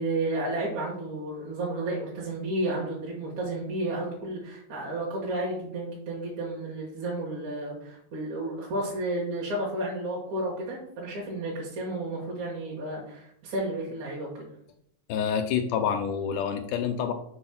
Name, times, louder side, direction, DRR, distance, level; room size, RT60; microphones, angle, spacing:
voice 1, 0.0-14.5, right 1 dB, 60° right, -4 dB, 3.0 m, -32 dB
voice 2, 15.1-17.1, left 7 dB, 80° left, 7 dB, 2.1 m, -27 dB
6.3 x 4.8 x 6.0 m, 0.72 s
omnidirectional pair, 4.0 m